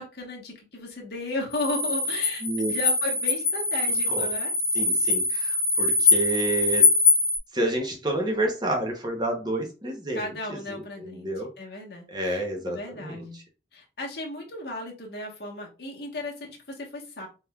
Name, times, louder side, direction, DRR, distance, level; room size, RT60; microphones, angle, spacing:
voice 1, 0.0-2.4 2.7-4.5 10.1-11.3 11.6-13.4 13.7-17.3, left 1 dB, 60° left, 0 dB, 1.2 m, -35 dB
sound 1, 1.5-7.4, left 3 dB, 85° left, 0.8 m, -23 dB
voice 2, 2.4-2.7 4.1-4.3 4.7-6.8 7.5-11.5 12.1-13.4, right 2 dB, 25° right, 2 dB, 0.8 m, -29 dB
4.2 x 3.5 x 2.3 m, 0.31 s
head